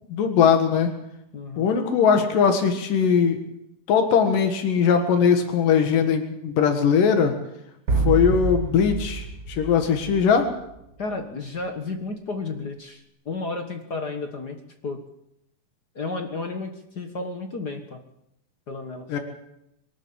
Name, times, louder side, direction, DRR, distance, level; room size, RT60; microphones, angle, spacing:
voice 1, 0.1-0.9 1.6-3.4 3.9-7.3 8.0-10.5 19.1-19.2, left 6 dB, 85° left, 5 dB, 3.4 m, -20 dB
voice 2, 1.3-1.7 11.0-14.6 14.8-15.0 15.9-18.0 18.7-19.1, left 3 dB, 45° left, 5 dB, 1.4 m, -32 dB
sound 1, 7.9-10.7, right 3 dB, 85° right, 0.8 m, -27 dB
23.0 x 13.0 x 8.6 m, 0.82 s
omnidirectional pair, 3.7 m